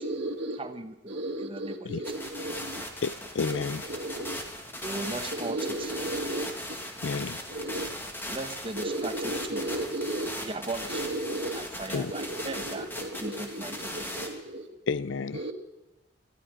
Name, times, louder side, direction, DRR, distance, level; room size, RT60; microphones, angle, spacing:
voice 1, 0.0-0.6 1.1-2.8 3.5-4.4 5.3-6.5 7.5-7.9 8.8-10.3 10.9-11.6 12.1-14.7 15.3-15.5, right 1 dB, 60° right, 1.8 m, -34 dB
voice 2, 0.6-2.1 4.8-5.9 8.3-9.7 10.4-11.0 11.5-12.9 13.1-14.1, right 2 dB, 25° right, 1.0 m, -38 dB
sound 1, 2.0-14.3, left 1 dB, 10° left, 1.9 m, -38 dB
voice 3, 3.0-3.8 7.0-7.4 11.9-12.1 14.9-15.4, left 5 dB, 75° left, 0.5 m, -30 dB
18.5 x 13.5 x 5.1 m
head